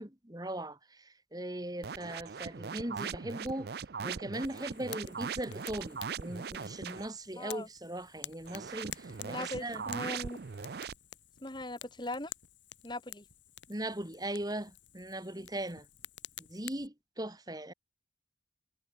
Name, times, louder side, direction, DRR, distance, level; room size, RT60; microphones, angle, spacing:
voice 1, 0.0-3.7 4.0-9.8 13.7-15.8 16.5-17.7, right 1 dB, 20° right, 2.2 m, -39 dB
sound 1, 1.8-7.1 8.4-10.9, right 6 dB, 55° right, 0.5 m, -40 dB
Fire, 4.4-16.9, left 11 dB, 70° left, 5.6 m, -50 dB
voice 2, 7.4-7.7 9.2-10.4 11.4-12.3 12.8-13.2 15.4-15.5, left 2 dB, 25° left, 2.3 m, -40 dB
head